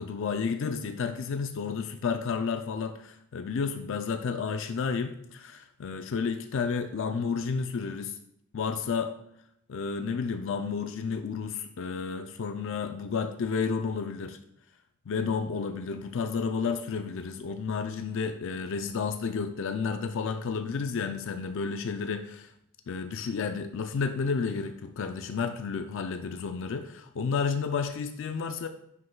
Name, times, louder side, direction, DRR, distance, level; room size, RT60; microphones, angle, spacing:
voice 1, 0.0-8.2 8.5-9.1 9.7-14.4 15.1-22.5 22.9-28.7, left 5 dB, 60° left, 8 dB, 0.4 m, -31 dB
9.5 x 5.4 x 2.2 m, 0.74 s
head